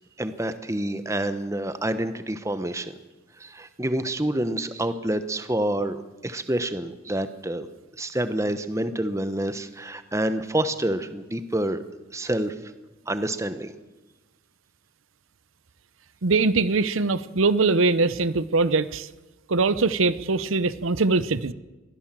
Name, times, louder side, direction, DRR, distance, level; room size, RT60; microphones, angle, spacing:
voice 1, 0.2-2.9 3.4-7.7 8.0-11.8 12.1-12.5 13.1-13.7, right 1 dB, 15° right, 11 dB, 1.0 m, -28 dB
voice 2, 16.2-19.1 19.5-21.5, right 3 dB, 80° right, 15 dB, 0.8 m, -22 dB
22.0 x 16.0 x 7.6 m, 1.1 s
head